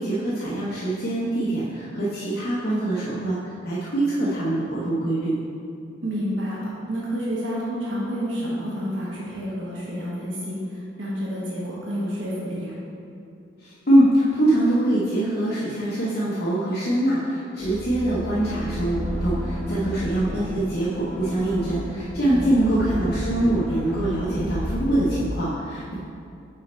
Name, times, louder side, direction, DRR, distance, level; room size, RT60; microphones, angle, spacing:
voice 1, 0.0-5.3 13.6-25.9, right 1 dB, 60° left, -8 dB, 0.8 m, -23 dB
voice 2, 6.0-12.7 22.6-22.9, equal, 90° right, -7 dB, 1.2 m, -29 dB
sound 1, 17.6-25.4, equal, 5° left, 0.3 m, -31 dB
5.5 x 4.3 x 4.3 m, 2.5 s
head